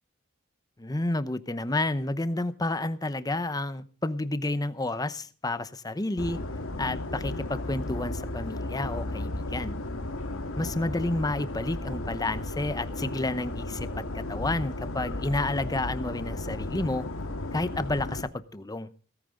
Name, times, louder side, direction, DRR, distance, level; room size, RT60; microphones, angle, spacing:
voice 1, 0.8-6.4 6.8-9.8 10.6-17.1 17.5-18.9, left 2 dB, 20° left, 13 dB, 0.8 m, -30 dB
sound 1, 6.2-18.2, left 2 dB, 85° left, 1.9 m, -34 dB
17.5 x 15.0 x 3.8 m, 0.38 s
head